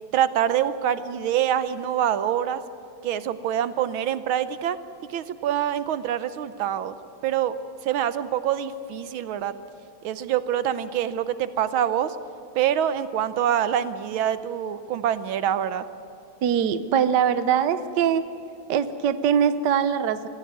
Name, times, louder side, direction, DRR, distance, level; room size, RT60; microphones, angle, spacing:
voice 1, 0.1-2.6 3.0-4.8 5.1-7.0 7.2-7.5 7.8-9.5 10.0-12.2 12.5-15.8, right 10 dB, 80° right, 13 dB, 1.6 m, -25 dB
voice 2, 16.4-18.3 18.7-20.3, right 8 dB, 65° right, 12 dB, 1.4 m, -22 dB
24.5 x 15.5 x 9.5 m, 2.8 s
omnidirectional pair, 2.2 m